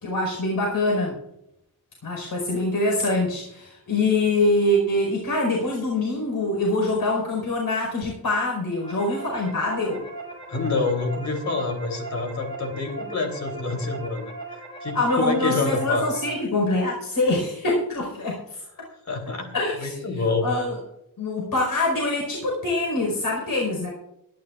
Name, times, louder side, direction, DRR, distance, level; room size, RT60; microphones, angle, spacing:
voice 1, 0.0-1.2 2.0-10.1 14.9-18.6 19.5-19.9 20.4-20.8 21.2-23.9, left 2 dB, 80° left, -1 dB, 4.8 m, -24 dB
sound 1, 8.6-16.3, right 2 dB, 15° left, 6.3 m, -39 dB
voice 2, 10.5-16.0 19.1-19.5 19.8-20.5, left 3 dB, 50° left, 3 dB, 3.5 m, -27 dB
22.5 x 11.5 x 2.5 m, 0.80 s
wide cardioid pair, 160°, 35 cm